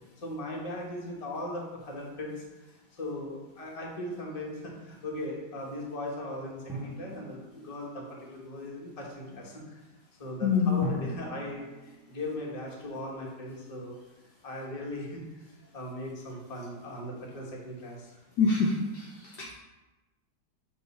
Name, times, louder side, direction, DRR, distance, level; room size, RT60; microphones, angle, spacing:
voice 1, 0.2-9.8 10.2-14.0 14.4-18.1, left 1 dB, 25° left, -2 dB, 0.8 m, -38 dB
Drum, 6.7-8.2 10.8-13.0, right 3 dB, 5° right, 0.4 m, -41 dB
voice 2, 10.4-10.9 18.4-19.5, left 5 dB, 70° left, -1 dB, 1.0 m, -26 dB
7.0 x 3.3 x 4.1 m, 1.1 s
omnidirectional pair, 2.2 m